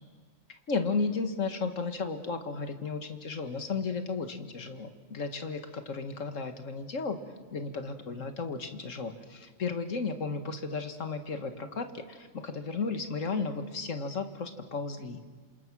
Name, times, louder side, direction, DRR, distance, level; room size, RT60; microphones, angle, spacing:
voice 1, 0.7-7.2 7.5-15.2, left 4 dB, 75° left, 7 dB, 2.0 m, -34 dB
28.0 x 27.0 x 6.2 m, 1.4 s
omnidirectional pair, 1.4 m